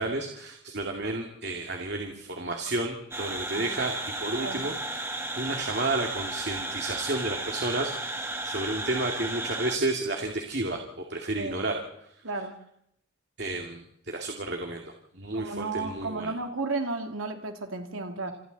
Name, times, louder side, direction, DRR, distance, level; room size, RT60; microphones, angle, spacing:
voice 1, 0.0-5.1 5.4-11.8 13.4-16.3, right 2 dB, 55° right, 3 dB, 2.4 m, -32 dB
sound 1, 3.1-9.8, right 2 dB, 10° right, 2.3 m, -34 dB
voice 2, 15.3-18.3, right 3 dB, 85° right, 5 dB, 2.7 m, -33 dB
28.5 x 26.5 x 4.1 m, 0.74 s
head